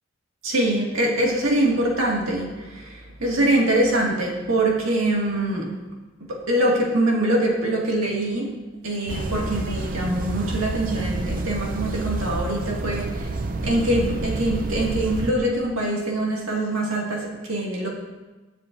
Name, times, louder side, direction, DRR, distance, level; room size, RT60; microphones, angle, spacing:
voice 1, 0.4-5.7 6.3-8.5 8.8-13.3 13.6-17.9, right 1 dB, 75° right, -2 dB, 1.9 m, -23 dB
sound 1, 9.1-15.3, right 2 dB, 40° right, 0.6 m, -29 dB
21.0 x 7.4 x 2.6 m, 1.2 s
head